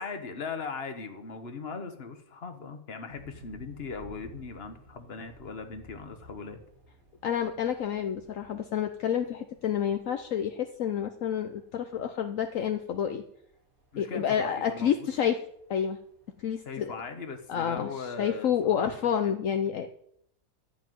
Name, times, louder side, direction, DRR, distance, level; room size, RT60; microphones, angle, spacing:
voice 1, 0.0-6.6 13.9-15.1 16.6-18.5 18.8-19.3, left 5 dB, 45° left, 7 dB, 1.6 m, -39 dB
sound 1, 3.1-18.2, right 1 dB, 70° right, 5.9 m, -57 dB
voice 2, 7.2-13.2 14.0-15.4 15.7-16.0 16.4-16.9 17.5-19.9, left 8 dB, 65° left, 6 dB, 1.2 m, -29 dB
13.0 x 5.8 x 9.2 m, 0.69 s
omnidirectional pair, 1.5 m